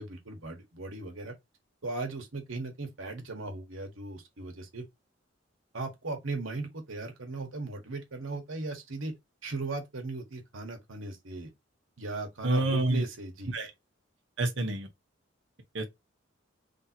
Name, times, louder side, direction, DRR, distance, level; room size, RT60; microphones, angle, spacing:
voice 1, 0.0-1.3 1.8-4.8 5.7-9.1 9.4-11.5 12.0-13.5, right 3 dB, 85° right, 1.3 m, -37 dB
voice 2, 12.4-13.0 13.5-13.7 14.4-14.9 15.7-15.9, right 2 dB, 65° right, 1.0 m, -27 dB
3.5 x 2.8 x 4.3 m
head